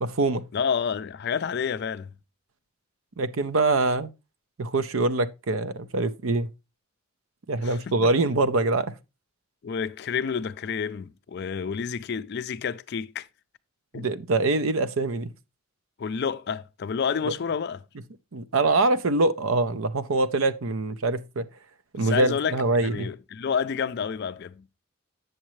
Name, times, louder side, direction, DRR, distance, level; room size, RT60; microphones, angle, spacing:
voice 1, 0.0-0.4 3.2-4.1 4.6-6.5 7.5-8.9 13.9-15.3 18.3-21.5 21.9-23.1, right 2 dB, 70° right, 0.6 m, -24 dB
voice 2, 0.5-2.1 7.6-8.1 9.6-13.3 13.9-14.1 16.0-17.8 22.0-24.6, left 6 dB, 50° left, 0.4 m, -29 dB
7.9 x 7.4 x 3.1 m
head